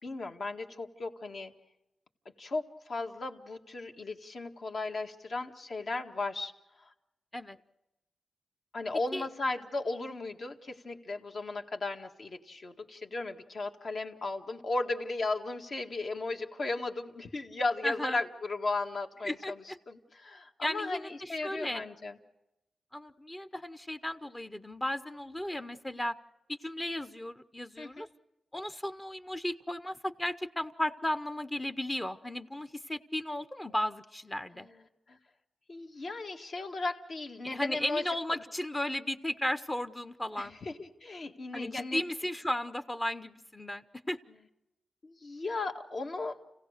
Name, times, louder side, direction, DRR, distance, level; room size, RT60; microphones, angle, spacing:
voice 1, 0.0-1.5 2.4-6.5 6.8-6.9 8.7-22.1 27.8-28.1 34.5-34.8 35.1-35.2 35.7-38.0 40.4-42.0 45.0-46.4, left 3 dB, 55° left, 3 dB, 1.9 m, -36 dB
voice 2, 17.8-18.2 19.2-19.8 20.6-21.8 22.9-26.2 26.5-28.1 28.5-34.7 37.4-40.6 41.5-44.2, left 1 dB, 15° left, 11 dB, 0.8 m, -35 dB
29.5 x 16.5 x 6.6 m, 0.94 s
wide cardioid pair, 95°, 0 cm